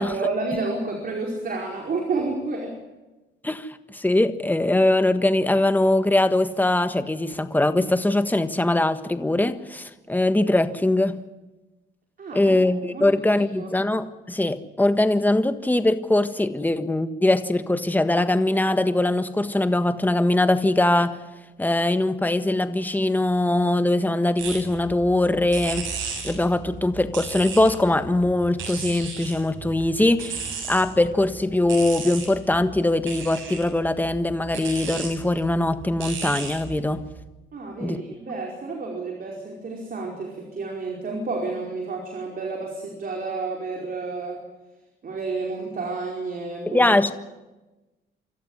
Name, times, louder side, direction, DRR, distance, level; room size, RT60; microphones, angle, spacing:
voice 1, 0.0-2.8 12.2-12.6 12.9-13.8 37.5-44.4 45.0-46.9, right 3 dB, 45° right, 0 dB, 4.9 m, -30 dB
voice 2, 3.4-11.2 12.3-21.2 21.6-25.9 26.2-30.4 30.7-37.1 37.8-38.0 46.7-47.1, left 1 dB, 10° left, 10 dB, 1.5 m, -22 dB
sound 1, 24.4-37.2, right 5 dB, 80° right, 7.2 m, -36 dB
26.0 x 14.0 x 9.8 m, 1.1 s
cardioid pair, 90°, 20 cm